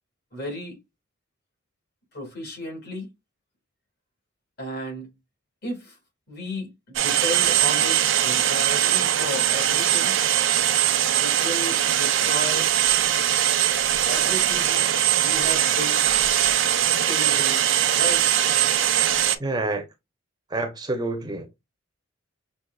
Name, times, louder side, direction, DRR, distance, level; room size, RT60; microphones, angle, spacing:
voice 1, 0.3-0.8 2.1-3.1 4.6-5.1 5.6-6.0 6.3-10.2 11.2-12.7 14.1-14.9 15.2-16.0 17.1-18.4, left 1 dB, 55° left, 2.1 m, -34 dB
sound 1, 7.0-19.4, right 11 dB, 75° right, 0.6 m, -21 dB
voice 2, 19.4-19.8 20.5-21.5, right 2 dB, 20° right, 0.6 m, -28 dB
5.9 x 2.4 x 2.3 m
head